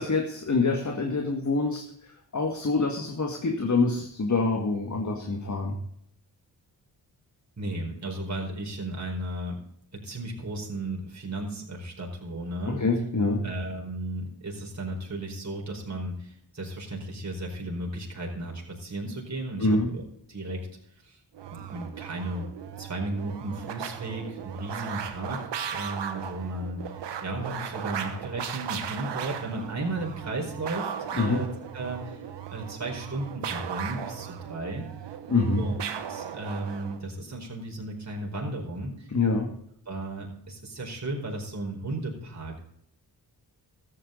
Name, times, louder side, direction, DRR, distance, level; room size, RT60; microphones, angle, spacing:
voice 1, 0.0-1.8 2.3-5.8 12.7-13.4 19.6-19.9 31.2-31.4 35.3-35.6 39.1-39.5, left 3 dB, 45° left, 3 dB, 2.0 m, -25 dB
voice 2, 7.6-9.6 9.9-12.9 13.4-20.0 20.3-20.7 21.0-21.2 21.5-22.4 22.8-34.8 35.6-35.8 36.1-39.1 39.8-42.6, right 1 dB, 40° right, -1 dB, 4.8 m, -35 dB
sound 1, 21.3-37.0, right 8 dB, 85° right, 1.2 m, -37 dB
13.5 x 9.7 x 3.9 m, 0.71 s
cardioid pair, 55°, 41 cm